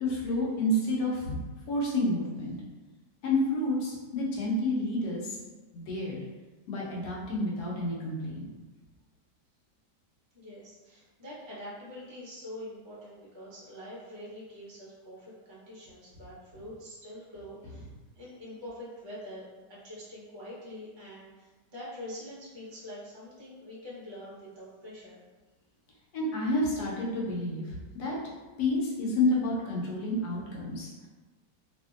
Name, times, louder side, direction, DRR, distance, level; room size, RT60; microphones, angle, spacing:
voice 1, 0.0-1.3 1.7-2.5 3.2-5.4 5.7-6.2 6.7-8.5 26.1-28.2 28.6-30.9, left 1 dB, 70° left, -4 dB, 1.2 m, -29 dB
voice 2, 10.3-25.2, left 1 dB, 40° right, -8 dB, 0.4 m, -45 dB
2.9 x 2.5 x 2.4 m, 1.2 s
omnidirectional pair, 1.9 m